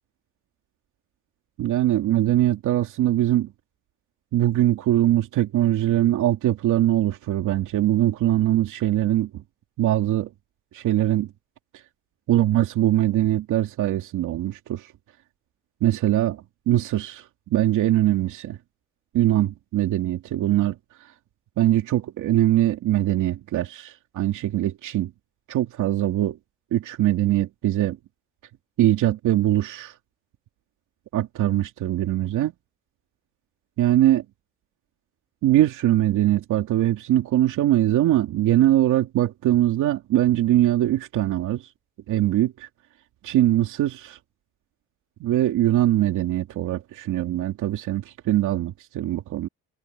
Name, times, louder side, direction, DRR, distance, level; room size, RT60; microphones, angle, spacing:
voice 1, 1.6-3.5 4.3-9.4 9.8-10.3 10.7-11.3 12.3-14.9 15.8-18.6 19.1-20.7 21.6-25.1 25.5-26.4 26.7-28.0 28.8-29.9 31.1-32.5 33.8-34.2 35.4-41.7 42.1-42.7 43.2-44.2 45.2-49.5, right 13 dB, 85° right, 2.7 m, -22 dB
cardioid pair, 90°, 30 cm